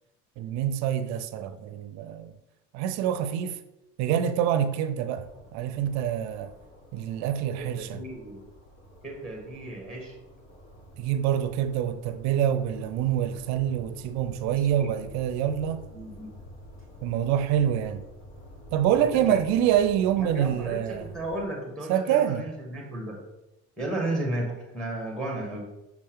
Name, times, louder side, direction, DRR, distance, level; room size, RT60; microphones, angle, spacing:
voice 1, 0.4-2.3 2.7-3.6 4.0-6.5 6.9-8.0 11.0-15.8 17.0-18.1 18.7-21.1 21.9-22.5, right 10 dB, 60° right, 0.6 m, -26 dB
sound 1, 5.2-21.4, left 1 dB, 55° left, 2.1 m, -49 dB
voice 2, 7.6-8.4 9.0-10.1 14.7-14.9 15.9-16.3 18.9-19.4 20.2-23.2 23.8-25.7, right 1 dB, ahead, 1.5 m, -34 dB
6.1 x 4.3 x 3.7 m
supercardioid pair, 125°, 31 cm